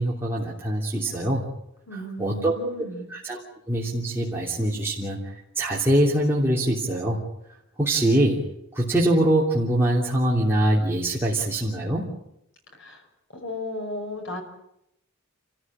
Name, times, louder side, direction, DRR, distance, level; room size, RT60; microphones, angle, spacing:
voice 1, 0.0-1.4 1.9-2.5 3.1-3.4 3.7-5.2 5.5-7.2 7.8-8.4 8.7-12.1, right 1 dB, 10° right, -5 dB, 3.2 m, -23 dB
voice 2, 1.9-3.1 12.7-13.0 13.3-14.4, left 1 dB, 60° left, 4 dB, 5.8 m, -35 dB
29.0 x 15.0 x 9.0 m, 0.82 s
head